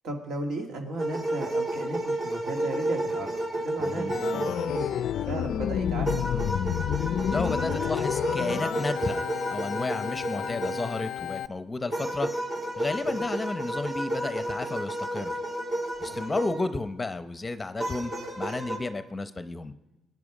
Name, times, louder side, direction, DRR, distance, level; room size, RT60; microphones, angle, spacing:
voice 1, 0.0-6.2 13.1-13.2 16.1-16.3, right 1 dB, 70° right, 2 dB, 2.3 m, -36 dB
sound 1, 1.0-5.2 6.0-11.0 11.9-16.7 17.8-18.8, right 1 dB, 45° right, 3.2 m, -31 dB
voice 2, 3.8-4.2 7.3-12.3 12.8-15.4 16.0-19.7, left 3 dB, 20° left, 10 dB, 0.7 m, -32 dB
Organ, 4.1-11.5, left 10 dB, 65° left, 0.4 m, -30 dB
19.5 x 9.5 x 4.9 m, 1.0 s
cardioid pair, 105°, 0 cm